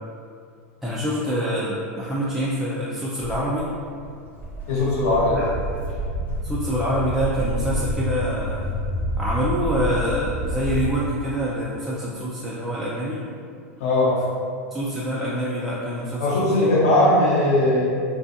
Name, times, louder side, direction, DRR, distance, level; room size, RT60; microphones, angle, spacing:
voice 1, 0.8-3.7 5.3-5.4 6.4-8.6 9.2-13.2 14.7-16.7, equal, ahead, -8 dB, 0.3 m, -26 dB
Walk footsteps, 3.2-10.9, equal, 25° left, 0.8 m, -29 dB
voice 2, 4.7-5.4 13.8-14.2 16.2-17.9, left 1 dB, 65° left, -6 dB, 0.8 m, -19 dB
2.5 x 2.3 x 2.5 m, 2.3 s
hypercardioid pair, 100°, 8 cm